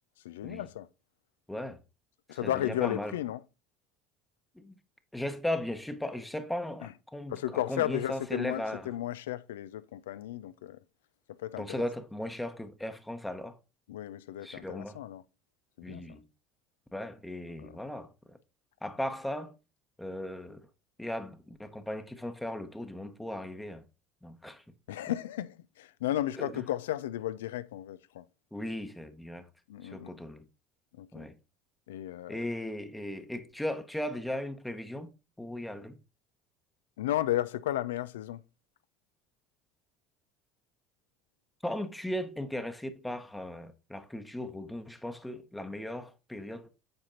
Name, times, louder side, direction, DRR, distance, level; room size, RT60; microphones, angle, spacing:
voice 1, 0.2-0.9 2.3-3.4 6.8-6.9 7.3-10.8 11.4-11.9 13.9-15.2 15.8-16.0 17.6-17.8 24.9-28.3 29.7-30.1 31.0-31.3 31.9-32.4 37.0-38.4, left 13 dB, 75° left, 0.4 m, -34 dB
voice 2, 1.5-1.8 2.3-3.1 4.6-4.7 5.1-8.8 11.6-13.6 14.4-15.0 15.8-16.2 16.9-18.4 18.8-19.5 20.0-20.7 21.0-23.8 24.2-24.6 26.4-26.5 28.5-29.5 29.8-30.4 31.1-31.4 32.3-35.1 35.4-36.0 41.6-46.7, left 1 dB, 5° left, 0.9 m, -37 dB
7.8 x 4.3 x 3.8 m
hypercardioid pair, 70°, 0 cm